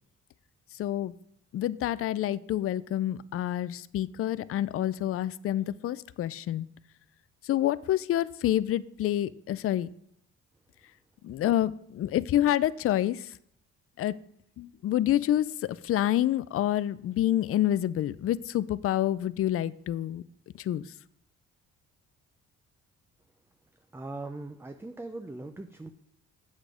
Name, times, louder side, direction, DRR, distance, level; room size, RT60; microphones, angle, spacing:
voice 1, 0.8-1.1 1.5-6.7 7.5-9.9 11.2-13.2 14.0-14.1 14.6-20.2 20.7-20.8, left 12 dB, 50° left, 17 dB, 0.4 m, -28 dB
voice 2, 23.9-25.9, right 2 dB, 10° right, 7 dB, 0.5 m, -40 dB
8.1 x 6.5 x 4.9 m, 0.70 s
cardioid pair, 90°, 30 cm